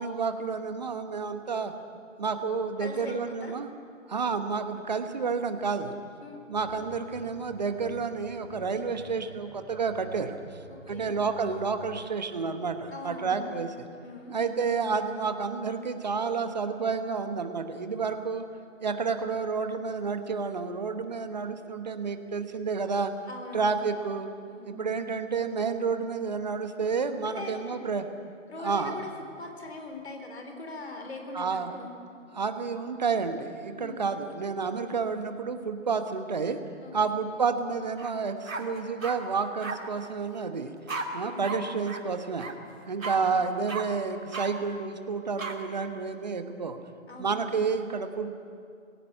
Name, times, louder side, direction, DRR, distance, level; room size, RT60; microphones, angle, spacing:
voice 1, 0.0-1.7 2.2-3.7 4.1-5.9 6.5-10.4 10.9-13.7 14.3-18.4 18.8-23.1 23.5-24.3 24.7-28.0 28.6-29.0 31.3-31.7 32.3-36.6 36.9-40.7 41.1-42.5 42.8-46.8 47.2-48.3, right 5 dB, 35° right, 8 dB, 1.3 m, -30 dB
voice 2, 2.8-3.6 6.2-6.4 10.7-11.1 12.9-13.6 14.0-14.4 23.3-23.8 24.5-24.8 27.2-27.8 28.5-29.1 29.4-31.9 33.8-34.0 36.8-36.9 41.2-41.8 43.2-43.4 47.1-47.5, left 2 dB, 55° left, 4 dB, 4.0 m, -41 dB
sound 1, 6.5-12.2, equal, 5° right, 4.6 m, -49 dB
sound 2, 38.0-38.1 38.5-39.2 39.6-39.8 40.9-41.0 41.4-41.6 41.8-42.0 42.4-42.5 43.0-43.2 43.7-43.8 44.3-44.5 45.4-45.5, right 4 dB, 85° right, 3.0 m, -34 dB
20.0 x 16.5 x 8.8 m, 2.4 s
hypercardioid pair, 170°, 39 cm